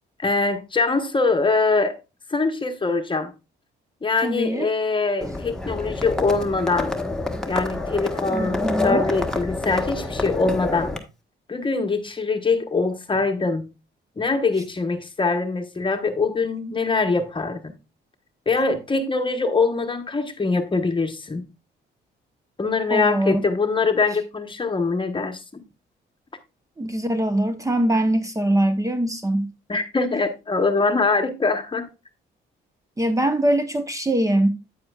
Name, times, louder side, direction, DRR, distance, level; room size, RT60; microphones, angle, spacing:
voice 1, 0.2-2.0 2.3-3.3 4.0-7.0 7.4-10.9 11.5-13.7 14.2-17.7 18.5-21.4 22.6-25.6 29.7-31.9, left 3 dB, 25° left, 1.2 m, -23 dB
voice 2, 4.2-4.7 8.3-9.0 22.9-23.3 26.8-29.5 33.0-34.6, right 1 dB, 15° right, 0.9 m, -22 dB
Livestock farm animals working animals, 5.2-11.0, left 2 dB, 5° left, 1.4 m, -27 dB
8.8 x 8.6 x 2.4 m
cardioid pair, 90°, 20 cm